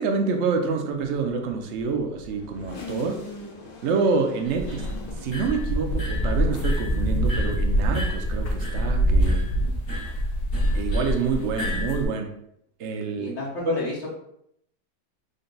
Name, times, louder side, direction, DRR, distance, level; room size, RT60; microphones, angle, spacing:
voice 1, 0.0-3.2 3.8-4.9 5.2-9.5 10.7-12.3 12.8-13.3 13.7-13.8, right 4 dB, 70° right, 3 dB, 0.7 m, -27 dB
sound 1, 0.9-7.8 8.2-10.2, left 2 dB, 85° left, 1.5 m, -43 dB
sound 2, 4.5-12.1, equal, 50° left, 1.0 m, -25 dB
voice 2, 9.6-9.9 13.2-14.1, left 2 dB, 65° left, -6 dB, 1.3 m, -32 dB
3.8 x 2.2 x 3.8 m, 0.74 s
omnidirectional pair, 1.8 m